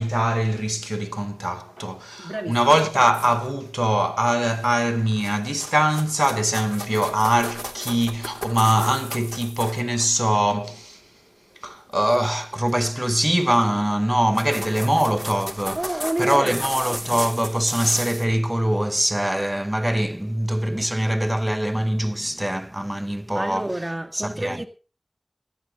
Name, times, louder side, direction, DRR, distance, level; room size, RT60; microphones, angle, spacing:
voice 1, 0.0-11.1 11.6-15.8 16.2-23.7 24.1-24.6, right 1 dB, 15° right, 0.8 m, -22 dB
voice 2, 2.2-2.6 15.8-16.6 23.3-24.7, right 1 dB, 35° right, 1.9 m, -28 dB
sound 1, 2.6-3.6 4.3-4.6 5.0-10.1 12.1-12.3 12.7-13.0 13.8-13.9 14.2-18.3, equal, 5° left, 2.7 m, -35 dB
18.5 x 13.0 x 3.9 m
wide cardioid pair, 45°, 0 cm